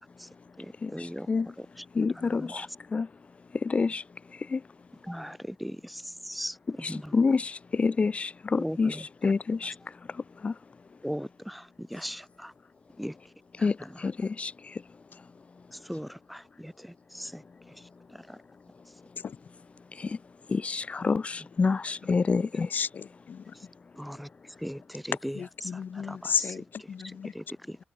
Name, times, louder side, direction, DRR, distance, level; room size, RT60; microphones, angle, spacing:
voice 1, 0.6-1.3 2.3-2.7 5.1-6.6 6.9-7.1 8.6-9.0 11.0-12.5 13.0-13.1 13.6-13.7 15.7-17.4 17.7-18.4 23.5-23.7 24.0-26.6 27.0-27.8, equal, ahead, 1.7 m, -39 dB
voice 2, 2.0-2.7 2.9-3.1 3.6-4.0 4.5-4.6 6.8-9.0 9.2-9.7 10.4-10.5 13.6-13.8 14.0-14.5 20.5-22.9, left 4 dB, 30° left, 0.5 m, -27 dB
voice 3, 22.7-23.5 25.3-27.3, left 7 dB, 55° left, 1.2 m, -33 dB
cardioid pair, 115°, 4 cm